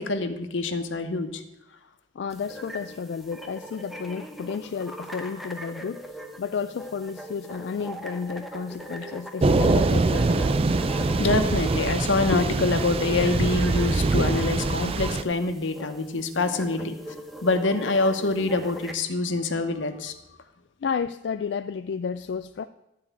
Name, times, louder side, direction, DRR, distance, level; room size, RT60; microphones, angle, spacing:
voice 1, 0.0-1.4 11.2-20.1, left 3 dB, 85° left, 7 dB, 1.0 m, -25 dB
voice 2, 2.1-10.6 16.8-16.9 20.8-22.7, left 6 dB, 65° left, 10 dB, 0.3 m, -32 dB
sound 1, 2.3-18.9, equal, ahead, 0.8 m, -41 dB
Thunder / Rain, 9.4-15.2, right 3 dB, 30° right, 0.4 m, -23 dB
12.0 x 4.8 x 8.2 m, 0.90 s
head